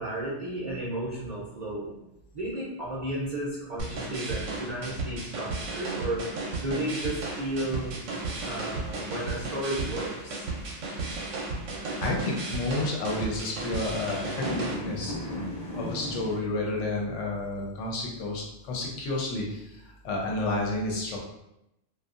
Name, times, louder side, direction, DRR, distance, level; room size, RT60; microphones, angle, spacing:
voice 1, 0.0-1.9 2.3-8.1 8.4-10.5, right 1 dB, 45° right, -8 dB, 0.6 m, -33 dB
sound 1, 3.8-14.8, right 3 dB, 75° right, 0.9 m, -34 dB
sound 2, 6.8-16.4, left 1 dB, 25° left, 0.7 m, -40 dB
voice 2, 12.0-15.5 15.7-21.2, left 2 dB, 75° left, -2 dB, 0.9 m, -31 dB
2.6 x 2.4 x 2.4 m, 0.86 s
omnidirectional pair, 1.3 m